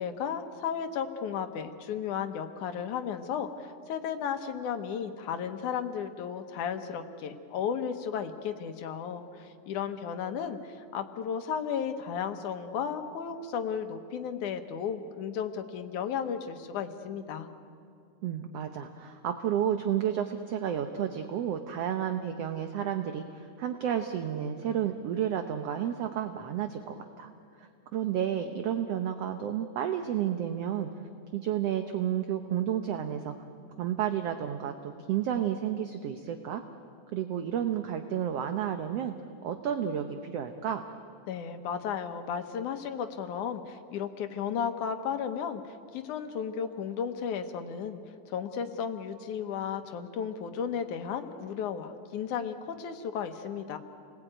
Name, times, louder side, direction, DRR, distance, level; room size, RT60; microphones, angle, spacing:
voice 1, 0.0-17.5 41.3-48.0 48.3-53.8, left 7 dB, 80° left, 7 dB, 2.7 m, -34 dB
voice 2, 18.2-27.3 27.6-30.9 31.3-33.3 33.8-36.6 37.1-39.1 39.4-40.8, right 9 dB, 65° right, 7 dB, 1.8 m, -31 dB
29.5 x 20.5 x 9.0 m, 2.4 s
omnidirectional pair, 3.5 m